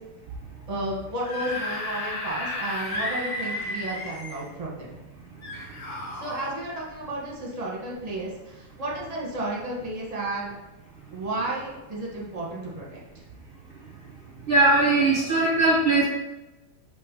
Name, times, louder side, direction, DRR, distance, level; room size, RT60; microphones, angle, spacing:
voice 1, 0.7-5.0 6.2-10.5 11.1-13.2, right 1 dB, 30° right, -4 dB, 0.9 m, -32 dB
Screaming / Screech, 1.1-4.5 5.4-6.5, left 2 dB, 50° left, 1.2 m, -33 dB
voice 2, 14.5-16.0, right 2 dB, 75° right, -3 dB, 0.5 m, -20 dB
4.9 x 2.9 x 3.7 m, 1.1 s
omnidirectional pair, 1.8 m